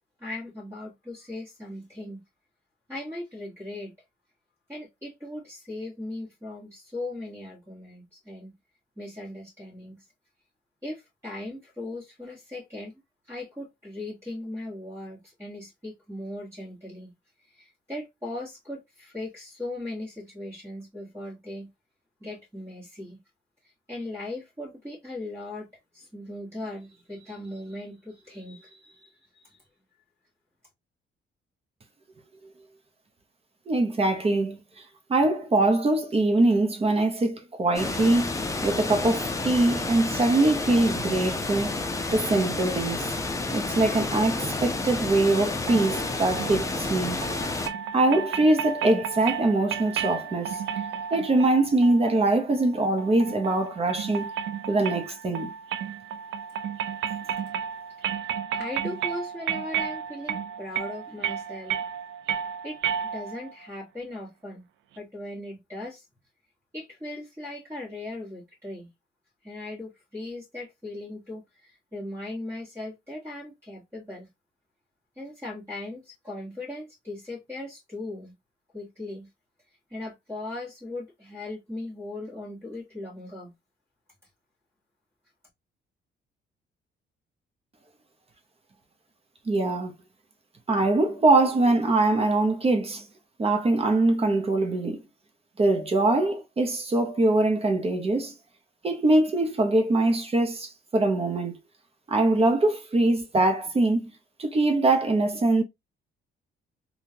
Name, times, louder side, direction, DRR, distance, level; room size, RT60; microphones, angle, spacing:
voice 1, 0.2-2.2 2.9-3.9 4.7-8.5 9.0-10.0 10.8-13.0 13.3-17.1 17.4-21.7 22.2-23.2 23.6-29.6 57.2-57.3 58.5-61.8 62.6-62.8 63.1-64.6 64.9-66.0 66.7-68.9 69.4-74.3 75.2-78.3 78.7-79.3 79.9-83.5, left 2 dB, 15° right, 1.4 m, -38 dB
voice 2, 33.7-34.6 35.1-38.3 38.6-43.1 43.5-47.2 47.9-50.6 51.1-54.3 54.7-55.5 89.5-89.9 90.7-93.1 93.4-95.0 95.6-98.3 98.8-101.6 102.1-104.1 104.4-105.6, right 2 dB, 30° right, 0.8 m, -23 dB
sound 1, 37.7-47.7, left 2 dB, 15° left, 0.6 m, -30 dB
sound 2, 45.7-63.5, right 8 dB, 75° right, 0.4 m, -33 dB
3.6 x 2.3 x 2.7 m
cardioid pair, 90°, 20 cm